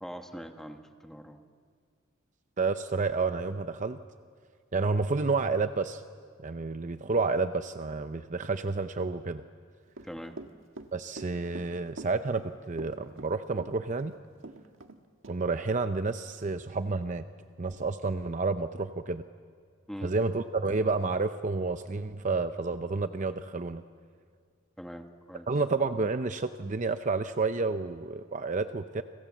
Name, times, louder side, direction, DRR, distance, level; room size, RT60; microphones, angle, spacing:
voice 1, 0.0-1.4 10.0-10.4 19.9-20.1 24.8-25.5, equal, ahead, 5 dB, 1.3 m, -42 dB
voice 2, 2.6-4.0 4.7-6.0 6.4-9.4 10.9-14.1 15.3-17.3 17.6-19.2 20.0-23.8 25.5-29.0, right 3 dB, 40° right, 9 dB, 0.6 m, -30 dB
Run / Walk footsteps, 9.9-15.0 15.2-15.4, right 2 dB, 75° right, 1.6 m, -44 dB
29.5 x 26.0 x 7.3 m, 2.1 s
head